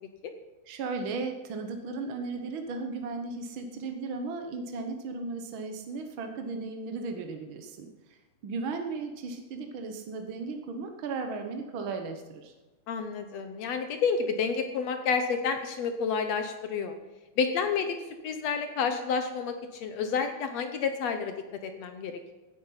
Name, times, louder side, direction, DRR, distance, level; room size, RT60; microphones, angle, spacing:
voice 1, 0.7-8.2 8.4-12.5, right 4 dB, 70° right, 5 dB, 1.2 m, -36 dB
voice 2, 12.9-17.0 17.4-18.0 18.2-21.3 21.6-22.3, left 5 dB, 65° left, 7 dB, 1.8 m, -30 dB
16.0 x 10.0 x 5.8 m, 1.2 s
omnidirectional pair, 3.9 m